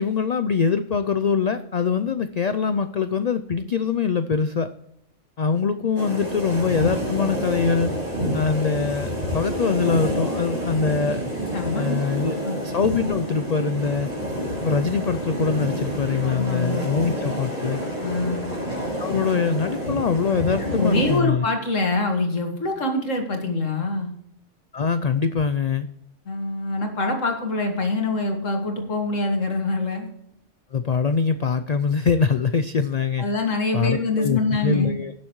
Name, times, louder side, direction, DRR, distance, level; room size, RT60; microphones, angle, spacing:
voice 1, 0.0-4.7 5.4-7.9 8.3-11.3 11.7-12.4 12.6-14.1 14.6-17.8 19.0-21.4 24.7-25.9 30.7-33.2 33.7-35.1, left 5 dB, 60° left, 10 dB, 0.4 m, -23 dB
sound 1, 6.0-21.2, equal, 30° right, 4.4 m, -28 dB
voice 2, 11.5-12.6 16.2-17.0 18.0-18.5 20.7-24.1 26.3-30.1 33.2-34.9, left 2 dB, 80° left, 3 dB, 2.3 m, -25 dB
18.0 x 7.2 x 3.1 m, 0.78 s
omnidirectional pair, 1.3 m